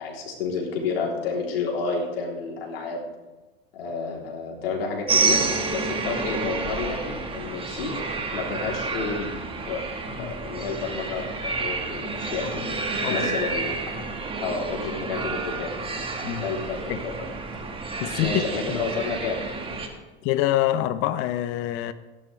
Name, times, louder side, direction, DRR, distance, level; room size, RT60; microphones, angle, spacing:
voice 1, 0.0-3.0 3.7-7.9 8.3-9.3 9.7-9.8 10.2-12.7 13.1-13.9 14.4-15.8 16.4-17.1 18.2-19.4 20.2-20.3, left 4 dB, 85° left, 3.6 m, -30 dB
sound 1, 5.1-19.9, right 3 dB, 20° right, 1.7 m, -29 dB
voice 2, 18.0-18.4 18.7-18.8 20.2-21.9, left 13 dB, 50° left, 0.9 m, -25 dB
16.0 x 11.0 x 3.4 m
hypercardioid pair, 110°, 29 cm